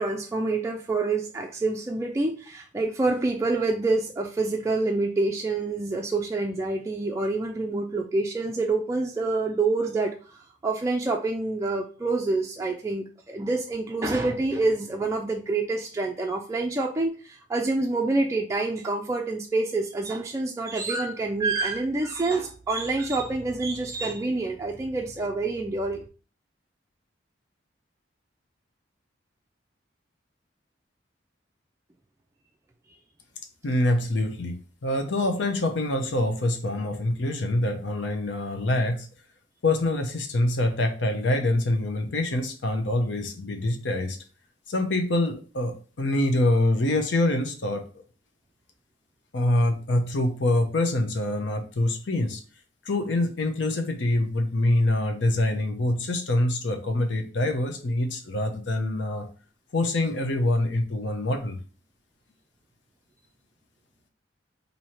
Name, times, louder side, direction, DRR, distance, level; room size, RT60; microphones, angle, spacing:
voice 1, 0.0-26.0, right 3 dB, 15° right, 0 dB, 0.3 m, -27 dB
voice 2, 33.6-34.5 34.8-39.1 39.6-44.2 44.7-48.0 49.3-52.4 52.8-59.2 59.7-61.6, left 1 dB, 75° left, 4 dB, 0.7 m, -25 dB
3.0 x 2.7 x 4.2 m, 0.38 s
head